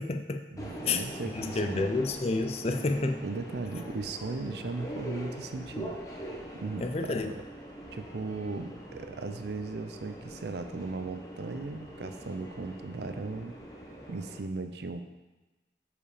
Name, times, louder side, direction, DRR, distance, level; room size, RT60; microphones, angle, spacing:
voice 1, 0.0-0.4 0.9-3.2 6.8-7.3, left 3 dB, 35° left, 6 dB, 0.5 m, -30 dB
voice 2, 0.5-1.9 3.2-6.0 6.5-7.3 7.9-13.6 14.1-15.0, right 3 dB, 75° right, 8 dB, 0.6 m, -37 dB
Subway metro underground, 0.6-14.4, equal, 20° left, 0.9 m, -43 dB
7.4 x 5.0 x 4.9 m, 1.1 s
head